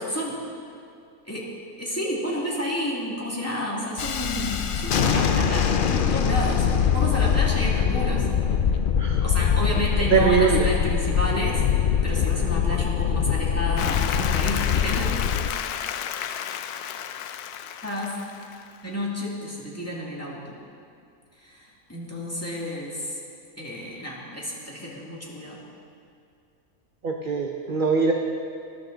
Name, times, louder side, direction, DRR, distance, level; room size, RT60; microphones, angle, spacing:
voice 1, 0.1-0.4 1.2-1.5 1.8-6.7 6.9-8.3 9.2-11.7 12.0-15.1 17.8-18.2 18.8-20.6 21.4-23.2 23.6-25.6, equal, 10° left, -5 dB, 2.3 m, -31 dB
Thunderstorm, 4.0-15.5, left 7 dB, 70° left, 0.4 m, -23 dB
voice 2, 10.1-10.7 27.0-28.1, right 5 dB, 45° right, 2 dB, 0.8 m, -22 dB
Applause, 13.8-18.8, left 9 dB, 90° left, 1.1 m, -32 dB
20.5 x 11.0 x 4.0 m, 2.4 s
omnidirectional pair, 1.6 m